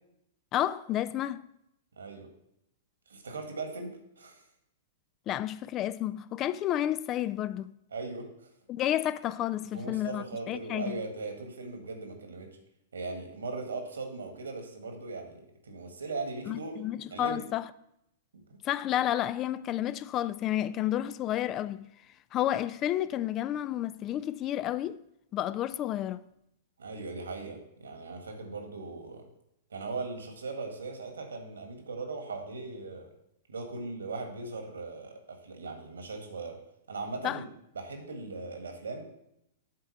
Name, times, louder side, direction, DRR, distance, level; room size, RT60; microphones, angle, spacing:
voice 1, 0.5-1.5 5.3-7.7 8.7-11.0 16.5-17.6 18.6-21.9 22.3-25.0 25.3-26.2 37.2-37.4, left 12 dB, 30° left, 0.3 m, -31 dB
voice 2, 2.0-2.3 3.1-4.4 7.9-8.5 9.7-12.5 12.9-16.7 17.1-17.4 18.3-18.6 26.8-29.2 29.7-33.1 33.5-36.6 36.9-37.4 37.7-39.0, right 3 dB, 75° right, 1.6 m, -39 dB
7.6 x 4.5 x 6.9 m
figure-of-eight pair, 105°, 0 cm